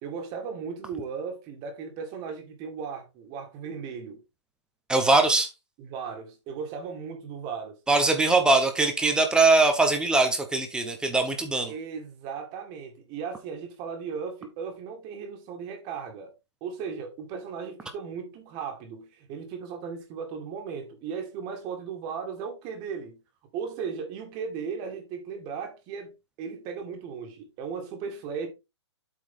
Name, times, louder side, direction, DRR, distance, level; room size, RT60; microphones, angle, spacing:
voice 1, 0.0-4.2 5.8-7.8 11.7-16.3 16.6-23.2 23.5-26.1 26.4-28.5, right 6 dB, 30° right, 2.1 m, -36 dB
voice 2, 4.9-5.5 7.9-11.7, right 3 dB, 5° right, 0.9 m, -21 dB
8.3 x 4.5 x 3.7 m
hypercardioid pair, 140°, 15 cm